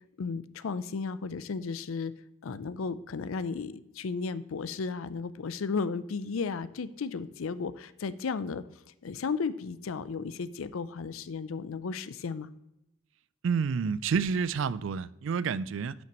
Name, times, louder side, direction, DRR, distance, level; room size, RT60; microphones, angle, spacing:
voice 1, 0.2-2.1 2.4-8.6 9.0-12.5, left 4 dB, 80° left, 0.5 m, -34 dB
voice 2, 13.4-16.0, right 6 dB, 65° right, 0.3 m, -29 dB
11.0 x 5.9 x 3.0 m
head